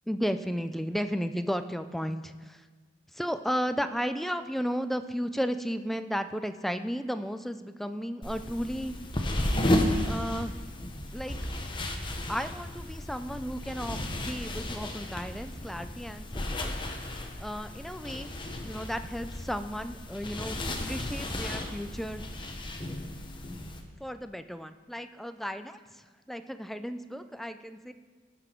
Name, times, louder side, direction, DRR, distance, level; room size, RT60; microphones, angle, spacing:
voice 1, 0.1-2.6 3.1-9.0 10.0-10.5 11.1-11.4 12.3-16.7 17.4-18.3 18.6-22.3 24.0-27.9, equal, ahead, 10 dB, 0.3 m, -34 dB
sound 1, 8.2-23.8, left 1 dB, 25° left, 1.0 m, -33 dB
17.5 x 6.0 x 4.5 m, 1.4 s
head